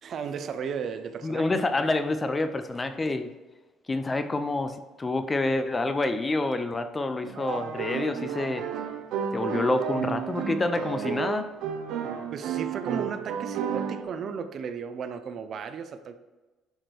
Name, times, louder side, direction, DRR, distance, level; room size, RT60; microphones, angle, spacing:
voice 1, 0.0-1.5 12.3-16.2, right 6 dB, 40° right, 10 dB, 0.6 m, -35 dB
voice 2, 1.2-3.3 3.9-8.6 9.3-11.5, left 2 dB, 15° left, 9 dB, 0.5 m, -27 dB
sound 1, 7.2-14.0, right 7 dB, 75° right, 0.9 m, -32 dB
10.0 x 5.0 x 4.5 m, 1.2 s
cardioid pair, 160°, 0 cm